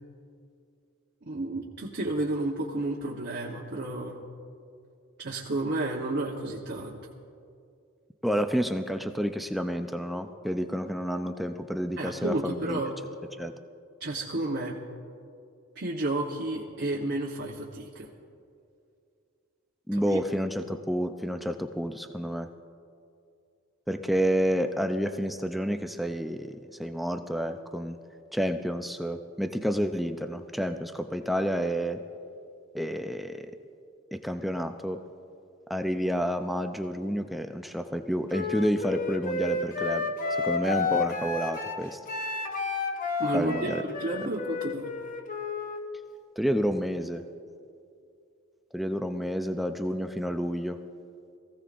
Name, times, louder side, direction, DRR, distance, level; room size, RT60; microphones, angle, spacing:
voice 1, 1.2-4.2 5.2-7.0 12.0-12.9 14.0-14.8 15.8-18.1 19.9-20.2 43.2-44.9, right 2 dB, 55° right, -3 dB, 1.1 m, -31 dB
voice 2, 8.2-12.8 13.4-13.5 19.9-22.5 23.9-28.0 28.3-32.0 32.7-33.5 34.1-35.0 35.7-40.1 40.4-42.0 43.3-43.8 46.4-47.2 48.7-50.8, equal, ahead, 6 dB, 0.5 m, -29 dB
Wind instrument woodwind instrument, 38.3-45.8, left 3 dB, 40° left, 0.9 m, -31 dB
23.0 x 15.5 x 2.5 m, 2.4 s
head